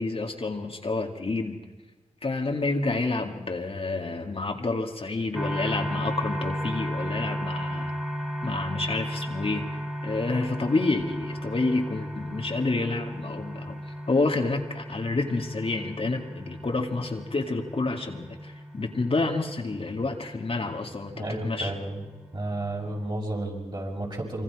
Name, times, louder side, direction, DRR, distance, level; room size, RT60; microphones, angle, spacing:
voice 1, 0.0-1.6 2.2-7.9 8.4-13.8 14.1-21.7, left 3 dB, 45° left, 2 dB, 2.1 m, -29 dB
sound 1, 5.3-23.1, equal, 5° right, 2.9 m, -35 dB
voice 2, 21.1-22.0 22.3-24.4, right 1 dB, 35° right, -2 dB, 6.6 m, -32 dB
25.5 x 23.5 x 4.9 m, 1.2 s
cardioid pair, 60°, 13 cm